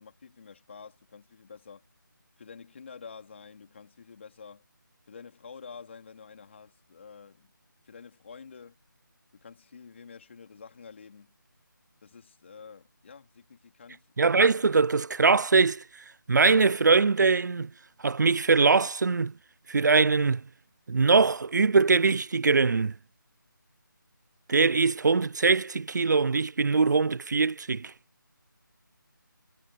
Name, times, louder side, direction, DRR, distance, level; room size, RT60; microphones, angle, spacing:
voice 1, 0.0-1.8 2.4-4.6 5.1-7.5 7.8-8.8 9.3-11.3 12.0-14.0, left 5 dB, 35° left, 3.8 m, -48 dB
voice 2, 14.2-15.8 16.3-17.7 18.0-19.3 19.7-20.4 20.9-22.9 24.5-27.9, right 4 dB, 60° right, 0.4 m, -22 dB
figure-of-eight pair, 170°, 11 cm